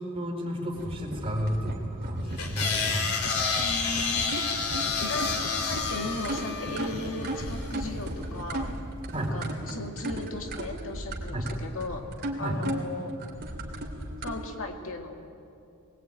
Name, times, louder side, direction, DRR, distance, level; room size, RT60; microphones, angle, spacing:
voice 1, 0.1-3.1 9.1-9.3 11.3-11.5 12.4-12.6, equal, 25° right, 0 dB, 4.4 m, -32 dB
sound 1, 0.7-14.4, right 1 dB, 50° right, 3.0 m, -36 dB
sound 2, 2.4-7.7, left 5 dB, 80° left, 3.1 m, -30 dB
voice 2, 3.6-4.4 5.0-8.7 9.2-12.0 12.4-13.1 14.2-15.1, left 2 dB, 65° left, 3 dB, 2.2 m, -37 dB
21.5 x 21.0 x 9.1 m, 2.6 s
head